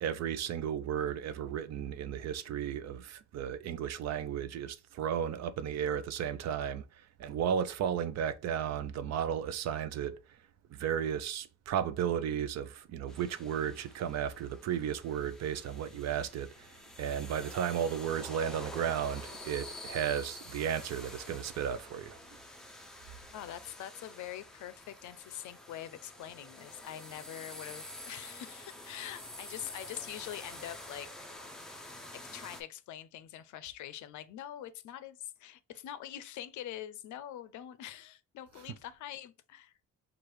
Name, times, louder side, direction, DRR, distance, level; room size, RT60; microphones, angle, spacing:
voice 1, 0.0-10.4 10.7-22.2, right 8 dB, 60° right, 0.5 m, -34 dB
sound 1, 13.1-32.6, left 1 dB, ahead, 0.5 m, -48 dB
voice 2, 23.3-31.1 32.1-39.7, left 12 dB, 70° left, 0.5 m, -44 dB
4.7 x 2.4 x 3.1 m
cardioid pair, 175°, 31 cm